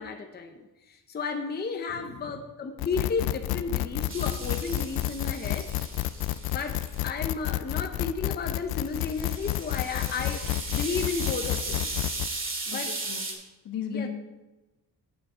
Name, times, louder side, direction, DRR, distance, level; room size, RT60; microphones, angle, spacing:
voice 1, 0.0-5.7 6.5-11.9 12.7-12.9 13.9-14.1, left 4 dB, 30° left, 4 dB, 0.7 m, -33 dB
voice 2, 1.9-2.4 12.7-13.3 13.6-14.1, left 7 dB, 70° left, 4 dB, 1.5 m, -36 dB
sound 1, 2.8-12.3, left 15 dB, 85° left, 0.5 m, -30 dB
sound 2, 4.1-7.1 8.9-13.3, right 3 dB, 35° right, 2.0 m, -36 dB
9.6 x 7.1 x 4.9 m, 1.1 s
cardioid pair, 145°, 35 cm